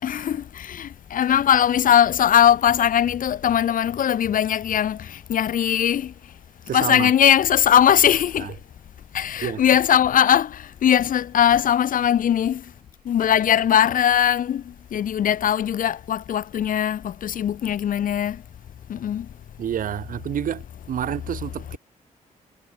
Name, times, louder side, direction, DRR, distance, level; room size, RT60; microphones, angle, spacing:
voice 1, 0.0-6.3 6.7-8.6 9.1-12.7 13.0-18.4 18.9-19.3, left 9 dB, 80° left, 4.7 m, -20 dB
voice 2, 6.7-7.1 8.4-8.5 9.4-9.6 19.6-21.8, right 10 dB, 85° right, 2.3 m, -29 dB
wide cardioid pair, 145°, 14 cm